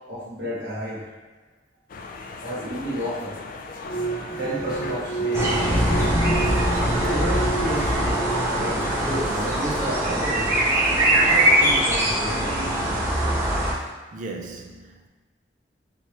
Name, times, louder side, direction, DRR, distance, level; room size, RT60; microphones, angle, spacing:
voice 1, 0.1-1.0 2.4-3.4 4.4-5.6 6.9-8.2 8.5-10.6 11.2-12.6, equal, 70° right, 1.1 m, -31 dB
sound 1, 1.9-10.0, left 3 dB, 50° left, 0.3 m, -37 dB
sound 2, 3.8-9.2, right 1 dB, 20° left, 0.8 m, -26 dB
sound 3, 5.3-13.7, right 1 dB, 15° right, 0.8 m, -22 dB
voice 2, 14.1-15.1, right 3 dB, 45° right, 0.4 m, -37 dB
3.4 x 2.9 x 3.1 m
head